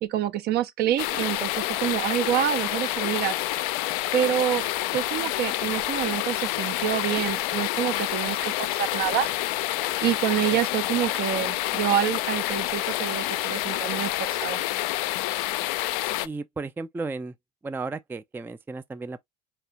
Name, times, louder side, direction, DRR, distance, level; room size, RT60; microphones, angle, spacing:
voice 1, 0.0-3.4 4.1-4.6 4.9-9.3 10.0-14.6, right 11 dB, 50° right, 0.6 m, -27 dB
sound 1, 1.0-16.3, left 16 dB, 70° left, 0.4 m, -28 dB
voice 2, 16.2-17.3 17.6-19.2, right 3 dB, 10° right, 0.4 m, -34 dB
4.8 x 2.9 x 2.8 m
hypercardioid pair, 65°, 21 cm